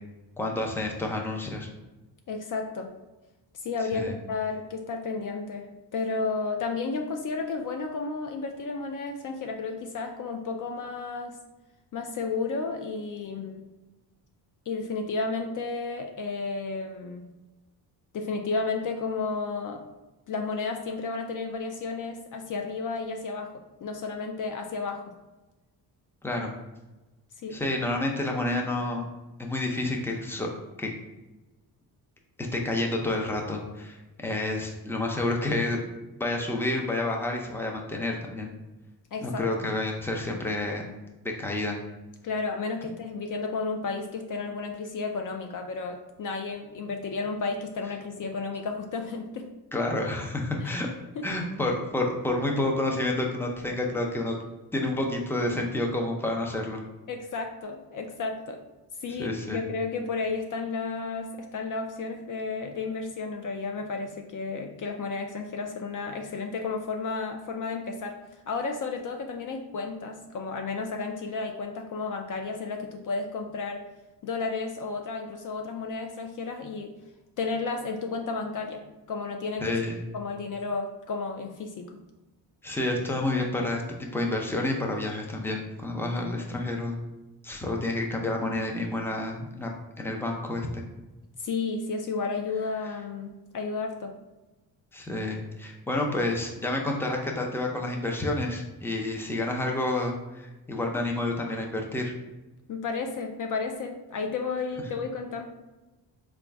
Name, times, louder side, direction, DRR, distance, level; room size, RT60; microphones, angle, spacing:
voice 1, 0.4-1.7 3.9-4.1 26.2-26.5 27.5-29.1 29.4-30.5 30.8-30.9 32.4-35.8 36.2-38.5 39.2-40.8 41.2-41.8 49.7-50.9 51.2-54.4 54.7-56.8 59.2-59.6 79.6-80.0 82.6-83.8 84.1-87.0 87.4-89.7 90.0-90.8 94.9-102.1, left 2 dB, 5° left, 1 dB, 0.7 m, -29 dB
voice 2, 2.3-2.9 3.5-11.4 11.9-13.7 14.7-17.3 18.1-19.8 20.3-25.1 27.4-27.6 39.1-39.4 42.2-49.5 50.6-50.7 51.2-51.3 57.1-58.6 59.0-73.8 74.2-77.0 77.4-78.8 79.1-79.8 80.1-82.0 91.4-94.2 102.7-105.4, left 4 dB, 50° left, 3 dB, 0.5 m, -32 dB
3.8 x 2.4 x 3.4 m, 1.1 s
cardioid pair, 70°, 40 cm